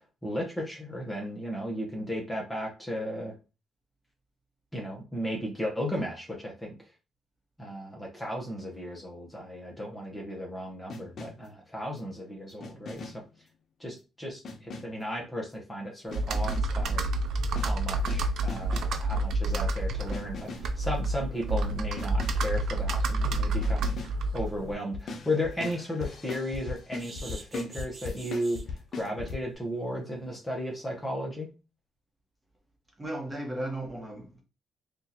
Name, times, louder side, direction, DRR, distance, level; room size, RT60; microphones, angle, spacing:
voice 1, 0.2-3.4 4.7-6.7 7.6-13.2 13.8-17.2 17.6-23.9 24.3-28.6 28.9-31.5, equal, 15° left, 0.9 m, -35 dB
sound 1, 10.9-11.6 12.6-13.4 14.4-15.1 16.1-16.8 17.4-19.0 20.1-20.8 22.0-22.5 23.6-24.2 24.9-29.4, left 4 dB, 55° left, 0.7 m, -40 dB
Computer keyboard, 16.1-24.7, right 2 dB, 70° right, 0.4 m, -29 dB
sound 2, 24.7-24.8 25.2-25.3 25.7-25.9 27.0-28.6 29.2-29.4 29.7-29.8 30.1-30.2, right 3 dB, 35° right, 0.8 m, -46 dB
voice 2, 33.0-34.4, right 1 dB, 15° right, 1.2 m, -35 dB
3.5 x 2.5 x 2.9 m
cardioid pair, 90°, 0 cm